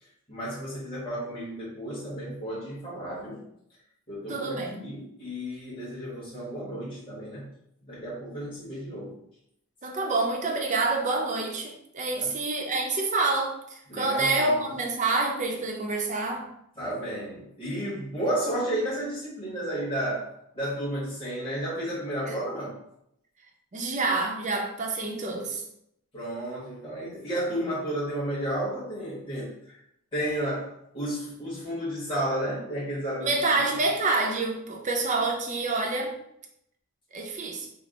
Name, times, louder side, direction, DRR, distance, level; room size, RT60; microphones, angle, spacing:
voice 1, 0.3-3.4 4.1-7.5 7.8-9.1 12.1-12.3 13.9-14.7 16.8-22.8 26.1-29.8 30.1-33.6, right 1 dB, 25° left, -8 dB, 1.4 m, -32 dB
voice 2, 4.3-4.8 9.8-16.5 22.3-22.4 23.7-25.6 33.2-36.1 37.1-37.7, right 3 dB, 35° right, 1 dB, 0.5 m, -27 dB
3.3 x 2.0 x 3.8 m, 0.76 s
head